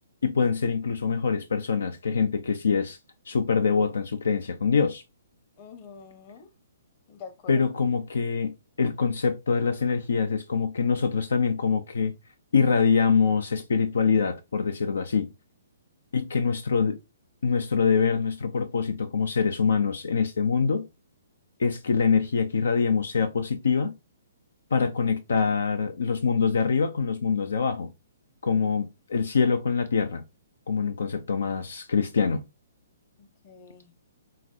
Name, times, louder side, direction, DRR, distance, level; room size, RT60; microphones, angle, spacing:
voice 1, 0.2-3.0 3.3-5.0 7.5-12.1 12.5-15.3 16.1-17.0 17.4-20.9 21.6-23.9 24.7-27.9 28.4-30.2 30.7-32.4, left 5 dB, 75° left, 0.5 m, -24 dB
voice 2, 5.6-6.5 7.1-7.6 33.2-33.9, left 6 dB, 40° left, 1.0 m, -46 dB
5.7 x 2.5 x 2.6 m
hypercardioid pair, 135°, 0 cm